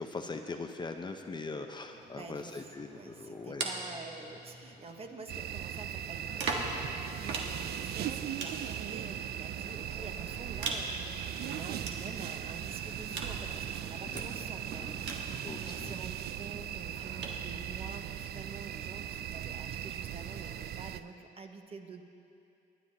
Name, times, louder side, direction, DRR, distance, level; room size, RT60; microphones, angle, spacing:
voice 1, 0.0-3.6 14.1-14.2 15.4-15.9, left 3 dB, 25° left, 5 dB, 0.6 m, -41 dB
sound 1, 1.9-5.1 6.0-16.1 16.9-17.4, right 3 dB, 80° right, 1.4 m, -42 dB
voice 2, 2.1-22.0, right 4 dB, 35° right, 4 dB, 1.0 m, -48 dB
sound 2, 5.3-21.0, right 10 dB, 65° right, 0.4 m, -39 dB
25.0 x 10.0 x 2.8 m, 2.7 s
cardioid pair, 110°, 18 cm